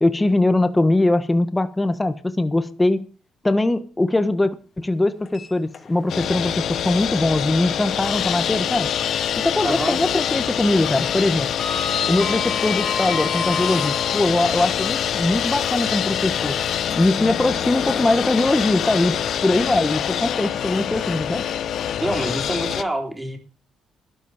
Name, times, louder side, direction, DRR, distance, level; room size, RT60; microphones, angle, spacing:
voice 1, 0.0-3.0 3.4-8.9 9.4-11.5 12.1-16.6 16.9-19.1 19.4-21.5, left 2 dB, 15° left, 11 dB, 1.3 m, -21 dB
Sliding door, 5.3-6.2 6.6-6.7 8.4-9.5 9.8-10.1 10.4-14.5 15.2-20.4, left 5 dB, 50° left, 2.5 m, -32 dB
sound 1, 6.1-22.8, left 9 dB, 70° left, 1.0 m, -25 dB
voice 2, 9.6-10.0 22.0-23.4, right 1 dB, 10° right, 2 dB, 3.6 m, -26 dB
12.5 x 12.0 x 5.0 m, 0.38 s
cardioid pair, 90°, 0 cm